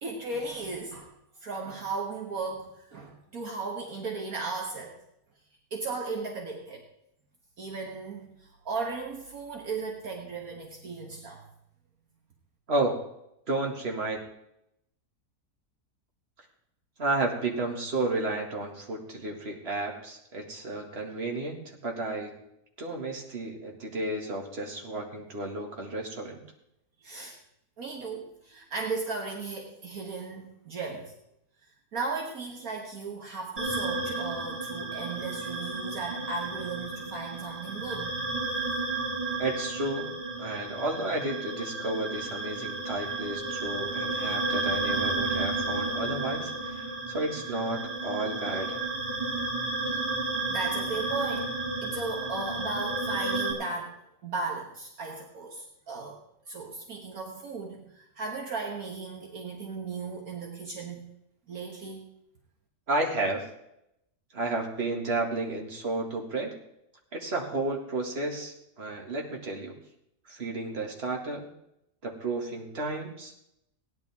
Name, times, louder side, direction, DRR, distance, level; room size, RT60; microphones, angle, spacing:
voice 1, 0.0-1.1 1.4-5.0 5.7-6.9 7.6-11.4 27.0-27.4 27.8-31.1 31.9-38.2 50.4-53.9 54.2-56.2 56.5-61.0 61.5-62.0, right 4 dB, 65° right, 1 dB, 1.7 m, -36 dB
voice 2, 12.7-13.0 13.5-14.2 17.0-22.4 22.8-26.4 39.4-40.1 40.4-48.9 62.9-63.5 64.3-66.5 67.1-69.8 70.3-71.5 72.0-73.5, right 2 dB, 40° right, 0 dB, 2.2 m, -32 dB
sound 1, 33.6-53.5, right 3 dB, 20° right, 2.4 m, -32 dB
17.5 x 10.5 x 3.6 m, 0.81 s
omnidirectional pair, 1.7 m